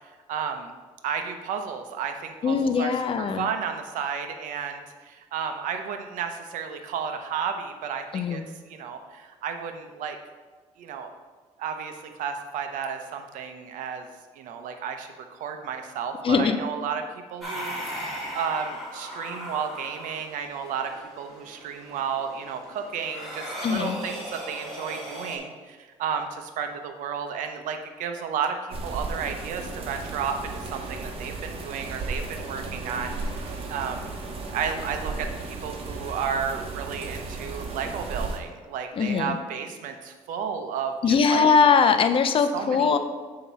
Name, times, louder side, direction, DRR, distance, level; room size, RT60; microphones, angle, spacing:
voice 1, 0.3-0.7 1.0-8.4 8.7-10.2 10.8-11.1 11.6-14.1 14.3-17.0 17.3-28.6 28.8-34.0 34.5-41.4 42.5-43.0, right 7 dB, 85° right, 6 dB, 0.7 m, -32 dB
voice 2, 2.4-3.5 8.1-8.4 16.2-16.6 23.6-24.0 38.9-39.4 41.0-43.0, left 5 dB, 45° left, 8 dB, 0.5 m, -21 dB
sound 1, 17.4-25.4, equal, ahead, 1.9 m, -38 dB
sound 2, 28.7-38.4, right 3 dB, 45° right, 1.0 m, -35 dB
7.1 x 2.9 x 5.5 m, 1.4 s
cardioid pair, 100°, 13 cm